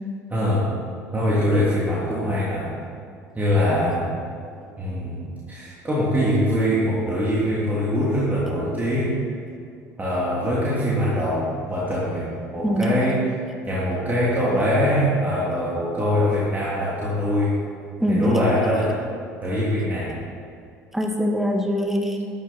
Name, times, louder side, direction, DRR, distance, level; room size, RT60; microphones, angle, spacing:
voice 1, 0.3-0.7 1.1-2.7 3.3-4.1 4.8-9.1 10.0-13.4 13.7-17.5 18.1-19.0 19.4-20.2, equal, 20° right, -7 dB, 3.1 m, -23 dB
voice 2, 20.9-22.2, equal, 5° right, 2 dB, 1.9 m, -23 dB
13.0 x 10.5 x 4.4 m, 2.4 s
figure-of-eight pair, 60°, 9 cm